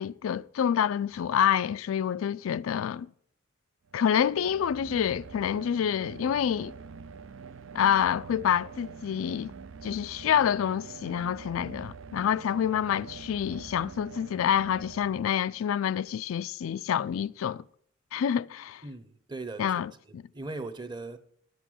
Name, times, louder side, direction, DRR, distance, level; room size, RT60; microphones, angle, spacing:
voice 1, 0.0-3.1 3.9-6.7 7.7-9.5 9.8-17.6 18.1-18.8 19.6-20.2, left 9 dB, 80° left, 0.3 m, -27 dB
sound 1, 3.9-15.8, right 5 dB, 70° right, 0.5 m, -45 dB
voice 2, 18.8-19.8 20.1-21.2, right 3 dB, 20° right, 0.8 m, -39 dB
10.5 x 8.0 x 6.2 m
head